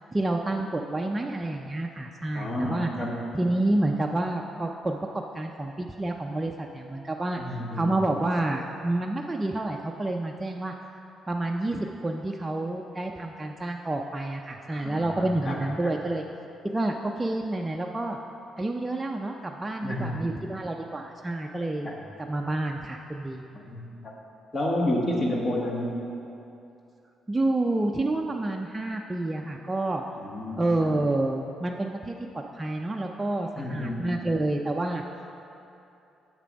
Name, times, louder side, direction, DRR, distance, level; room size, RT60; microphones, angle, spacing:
voice 1, 0.1-2.9 3.3-10.7 11.3-16.2 16.6-18.2 18.6-21.9 22.2-23.4 27.3-30.0 30.6-32.1 32.5-35.0, right 2 dB, 15° right, 1 dB, 0.4 m, -29 dB
voice 2, 2.3-3.2 7.4-7.9 14.7-15.6 15.8-15.9 19.8-20.2 21.8-21.9 23.7-23.8 24.5-26.0 30.2-30.9 33.6-34.2, left 1 dB, 35° left, -1 dB, 1.5 m, -30 dB
6.9 x 6.7 x 5.2 m, 2.8 s
cardioid pair, 90°, 0 cm